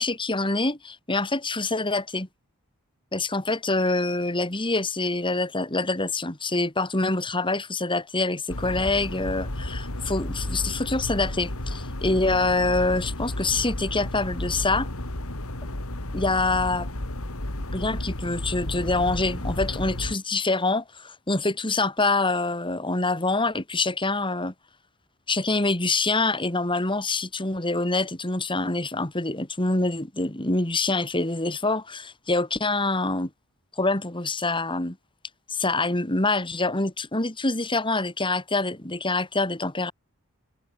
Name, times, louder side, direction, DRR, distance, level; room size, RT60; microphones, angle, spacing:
voice 1, 0.0-2.3 3.1-14.9 16.1-16.9 17.7-24.5 25.3-33.3 33.8-35.0 35.5-39.9, left 2 dB, 20° left, 2.7 m, -25 dB
sound 1, 8.5-20.2, left 1 dB, 75° left, 3.0 m, -32 dB
head